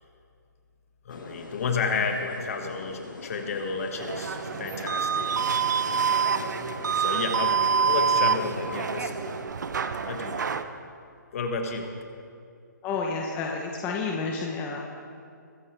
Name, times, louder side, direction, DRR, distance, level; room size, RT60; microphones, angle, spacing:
voice 1, 1.0-5.6 6.5-7.6 7.8-9.1 10.0-10.5 11.3-11.9, left 4 dB, 45° left, 4 dB, 1.8 m, -31 dB
sound 1, 1.1-9.5, left 3 dB, 85° left, 1.9 m, -42 dB
sound 2, 4.0-10.6, right 6 dB, 65° right, 0.8 m, -26 dB
voice 2, 12.8-14.8, left 4 dB, 15° left, 0 dB, 0.9 m, -30 dB
22.5 x 9.6 x 3.5 m, 2.3 s
hypercardioid pair, 150°, 10 cm